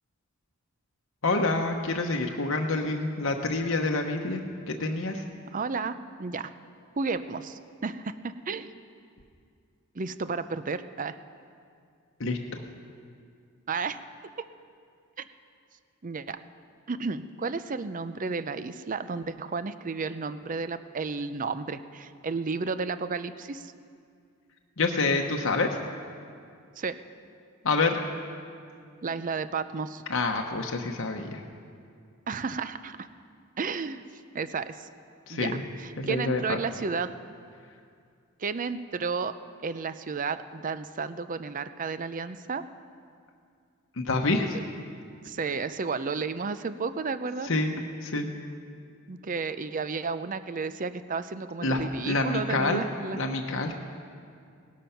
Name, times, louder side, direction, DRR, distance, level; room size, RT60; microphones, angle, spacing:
voice 1, 1.2-5.2 12.2-12.6 24.8-25.8 27.6-28.0 30.1-31.4 35.3-35.6 36.0-36.4 43.9-44.6 47.4-47.7 48.0-48.3 51.6-52.8 53.1-53.8, left 3 dB, 65° left, 2 dB, 1.0 m, -27 dB
voice 2, 5.5-6.5 7.0-8.7 9.9-11.2 13.7-14.0 15.2-15.3 16.0-16.4 16.9-23.7 26.8-27.0 29.0-30.0 32.3-33.1 33.6-34.0 34.3-34.9 35.3-37.1 38.4-39.3 39.6-42.6 45.2-47.5 49.1-53.2, right 4 dB, 40° right, 12 dB, 0.5 m, -32 dB
18.5 x 12.5 x 5.8 m, 2.3 s
head